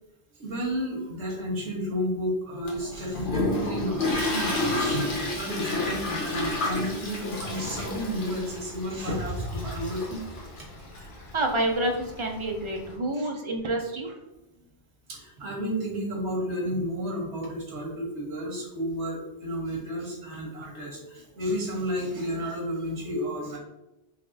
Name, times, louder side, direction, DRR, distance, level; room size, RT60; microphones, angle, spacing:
voice 1, 0.4-10.4 11.0-11.1 13.1-13.3 15.1-23.6, equal, 90° right, -1 dB, 1.5 m, -32 dB
Toilet flush, 2.7-12.9, left 2 dB, 50° left, 1.0 m, -31 dB
voice 2, 11.3-14.1, right 1 dB, 45° right, 2 dB, 0.3 m, -28 dB
4.0 x 3.1 x 2.6 m, 0.96 s
omnidirectional pair, 1.1 m